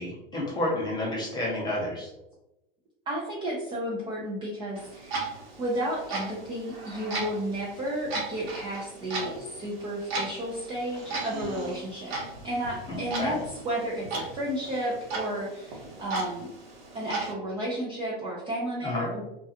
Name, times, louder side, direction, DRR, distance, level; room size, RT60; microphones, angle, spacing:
voice 1, 0.0-2.1 12.9-13.4 18.8-19.1, left 1 dB, 15° left, -3 dB, 0.9 m, -30 dB
voice 2, 3.1-5.3 5.6-12.1 12.4-13.4 13.6-16.5 16.9-19.2, right 1 dB, 15° right, -4 dB, 0.4 m, -32 dB
Clock, 4.7-17.3, right 3 dB, 80° right, 0.9 m, -37 dB
sound 1, 6.6-7.5 9.0-9.8 10.9-11.9 13.1-13.6 14.5-15.2, right 1 dB, 40° right, 0.9 m, -44 dB
2.3 x 2.2 x 2.7 m, 0.92 s
supercardioid pair, 130°, 29 cm